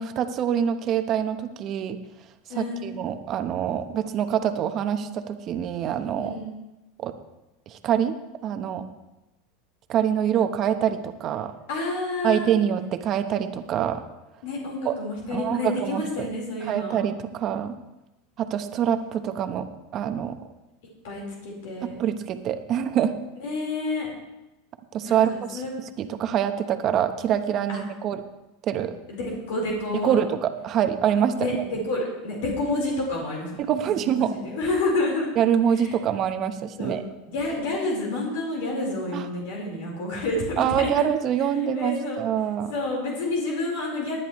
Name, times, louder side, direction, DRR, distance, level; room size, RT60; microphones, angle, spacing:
voice 1, 0.0-2.0 2.6-6.4 7.0-7.1 7.7-8.2 8.4-8.9 9.9-11.5 12.2-14.0 14.8-14.9 15.3-16.3 16.7-17.7 18.4-20.4 21.8-23.2 24.9-28.2 28.7-28.9 29.9-31.6 33.6-34.4 35.4-37.0 39.1-39.3 40.6-42.7, right 9 dB, 40° right, 9 dB, 1.0 m, -25 dB
voice 2, 2.5-2.9 6.1-6.5 11.7-12.6 14.4-17.0 21.0-22.0 23.4-24.1 25.0-25.7 27.7-27.8 29.1-30.2 31.4-33.7 34.0-35.3 35.8-35.9 36.8-37.0 37.3-40.9 41.8-42.2 42.7-44.2, left 2 dB, 75° left, -2 dB, 4.5 m, -29 dB
19.0 x 10.5 x 3.2 m, 0.98 s
supercardioid pair, 115°, 0 cm